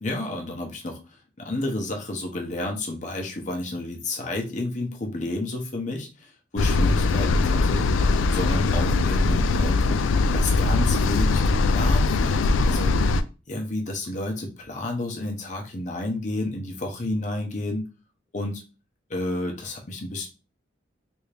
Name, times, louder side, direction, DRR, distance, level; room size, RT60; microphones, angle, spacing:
voice 1, 0.0-10.0 10.3-12.9 13.5-17.9 18.3-18.6 19.1-20.3, left 2 dB, 40° left, 2 dB, 0.8 m, -31 dB
sound 1, 6.6-13.2, left 3 dB, 90° left, 0.3 m, -21 dB
3.4 x 2.6 x 3.3 m, 0.31 s
head